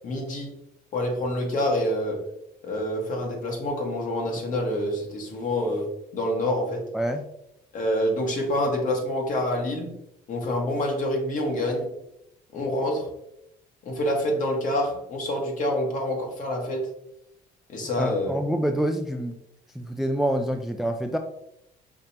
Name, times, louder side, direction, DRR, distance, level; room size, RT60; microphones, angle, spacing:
voice 1, 0.0-0.5 0.9-2.3 2.6-6.9 7.7-9.9 10.3-11.9 12.5-13.1 13.8-16.9 17.7-18.3, left 1 dB, 50° left, 1 dB, 1.4 m, -27 dB
voice 2, 18.0-19.4 19.8-21.2, equal, ahead, 6 dB, 0.3 m, -26 dB
5.1 x 3.4 x 2.8 m, 0.79 s
cardioid pair, 110°, 17 cm